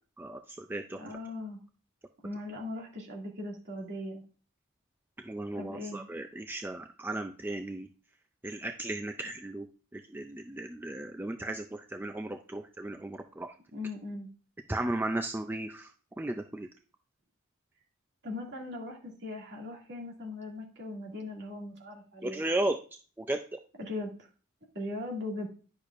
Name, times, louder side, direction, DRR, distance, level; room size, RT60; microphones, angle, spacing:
voice 1, 0.2-1.0 5.2-7.9 8.4-9.7 9.9-13.5 14.7-16.7 22.2-22.8 23.2-23.6, right 2 dB, 10° right, 6 dB, 0.3 m, -35 dB
voice 2, 0.9-1.6 2.2-4.2 5.6-6.0 13.7-14.3 18.2-22.4 23.8-24.1 24.7-25.5, left 2 dB, 50° right, -1 dB, 2.3 m, -39 dB
10.5 x 6.4 x 2.5 m, 0.38 s
head